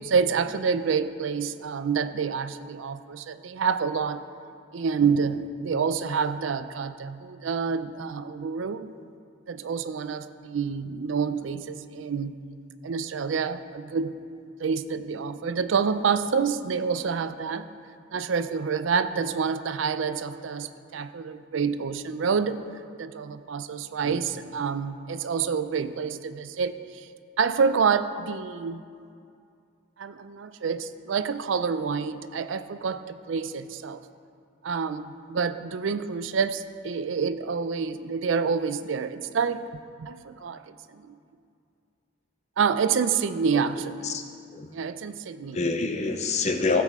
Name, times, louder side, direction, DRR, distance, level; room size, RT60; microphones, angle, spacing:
voice 1, 0.0-4.2 4.7-8.9 9.5-12.4 12.8-14.1 14.6-17.7 18.1-22.6 23.0-27.1 27.4-28.8 30.0-34.1 34.6-41.2 42.6-44.2 44.7-45.6, right 6 dB, 75° right, 12 dB, 0.4 m, -28 dB
voice 2, 45.5-46.8, left 3 dB, 35° left, 6 dB, 0.6 m, -26 dB
15.0 x 7.5 x 3.6 m, 2.4 s
head